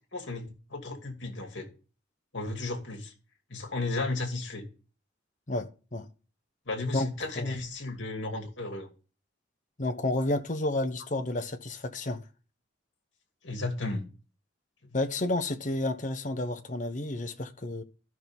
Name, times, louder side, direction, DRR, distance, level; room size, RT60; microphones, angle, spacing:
voice 1, 0.1-0.4 0.7-1.7 2.3-3.1 3.5-4.6 6.7-8.9 13.4-14.0, left 2 dB, 65° left, 2.4 m, -34 dB
voice 2, 5.5-6.1 6.9-7.5 9.8-12.2 14.9-17.8, left 2 dB, 40° left, 1.1 m, -31 dB
14.0 x 6.1 x 3.6 m
head